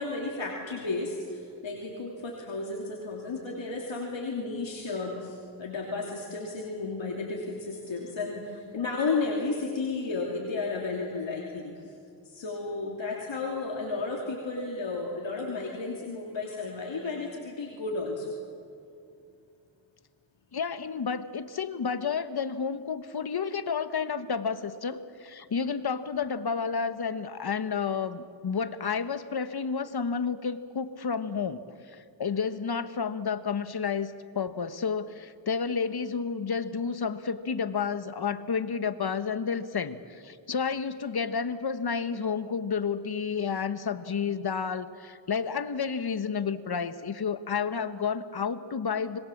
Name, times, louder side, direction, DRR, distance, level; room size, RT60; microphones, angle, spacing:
voice 1, 0.0-11.9 12.2-18.4, left 3 dB, 75° left, -2 dB, 3.1 m, -33 dB
voice 2, 20.5-31.6 31.9-49.2, left 6 dB, 55° left, 11 dB, 1.3 m, -31 dB
26.0 x 21.5 x 7.3 m, 2.5 s
cardioid pair, 65°, 46 cm